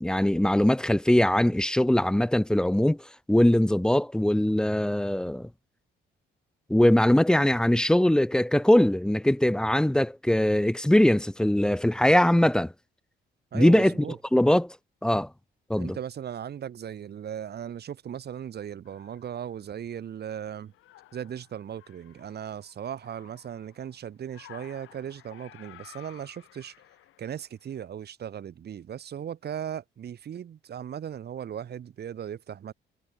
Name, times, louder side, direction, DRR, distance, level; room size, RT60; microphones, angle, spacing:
voice 1, 0.0-3.0 3.3-5.5 6.7-12.7 13.5-13.9 14.3-14.7 15.0-15.3 15.7-16.0, left 1 dB, 5° left, 0.4 m, -21 dB
voice 2, 13.5-14.2 15.8-20.7 21.1-26.7 27.2-32.7, right 9 dB, 55° right, 1.6 m, -37 dB
sound 1, 18.9-20.2 20.6-27.9, left 15 dB, 85° left, 3.2 m, -54 dB
cardioid pair, 90°, 20 cm